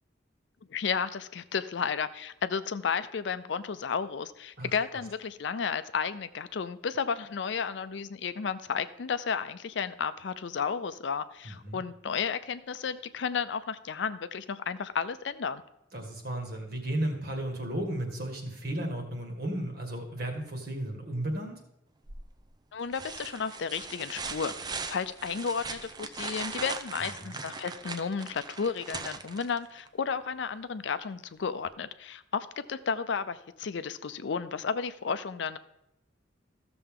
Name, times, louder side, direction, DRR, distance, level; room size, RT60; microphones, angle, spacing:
voice 1, 0.7-15.6 22.7-35.6, left 6 dB, 70° left, 13 dB, 0.5 m, -33 dB
voice 2, 11.4-11.8 15.9-21.6 27.2-27.4, right 1 dB, 55° right, 3 dB, 1.8 m, -34 dB
sound 1, 22.1-22.5 22.9-29.9 31.7-31.8, right 4 dB, 20° right, 0.5 m, -39 dB
14.0 x 6.8 x 3.7 m, 0.84 s
head